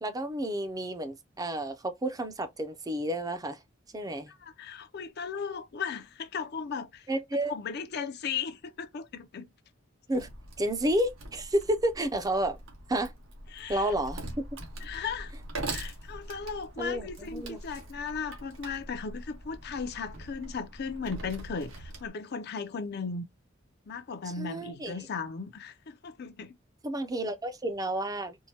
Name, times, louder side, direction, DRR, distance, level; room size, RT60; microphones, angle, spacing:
voice 1, 0.0-3.6 3.9-4.3 7.1-7.5 10.1-10.3 10.6-12.6 12.9-13.1 13.7-14.2 16.8-17.6 24.4-24.9 26.8-28.4, right 1 dB, 20° right, 0.5 m, -30 dB
voice 2, 4.3-7.1 7.3-9.5 13.5-13.9 14.8-15.3 15.7-23.3 23.9-26.6, left 5 dB, 55° left, 0.5 m, -36 dB
Wood, 10.1-22.1, right 2 dB, 90° right, 1.5 m, -43 dB
4.5 x 2.1 x 2.8 m
head